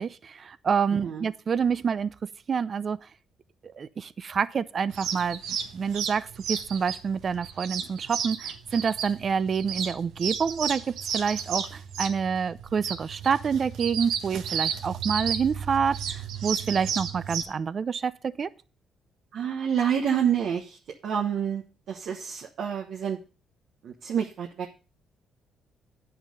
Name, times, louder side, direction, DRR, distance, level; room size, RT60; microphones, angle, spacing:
voice 1, 0.0-3.0 3.8-5.4 5.7-10.8 11.1-18.5, right 6 dB, 45° right, 16 dB, 0.6 m, -27 dB
sound 1, 4.9-17.4, right 7 dB, 85° right, 1.3 m, -33 dB
voice 2, 19.3-20.8 21.0-21.6 21.9-23.2 23.8-24.7, right 8 dB, 70° right, 0 dB, 1.2 m, -28 dB
9.6 x 5.8 x 6.7 m, 0.35 s
cardioid pair, 90°, 0 cm